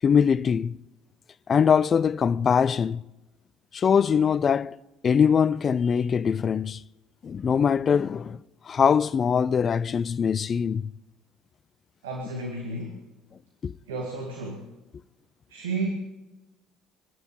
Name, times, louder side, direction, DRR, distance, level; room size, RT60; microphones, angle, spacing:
voice 1, 0.0-0.8 1.5-3.0 3.7-4.8 5.0-6.8 7.2-8.4 8.7-10.8 13.6-13.7, left 7 dB, 40° left, 0.4 m, -22 dB
voice 2, 12.0-13.0 13.9-14.7 15.5-15.9, right 3 dB, 80° right, 1.9 m, -32 dB
23.5 x 10.5 x 5.4 m
hypercardioid pair, 60°, 0 cm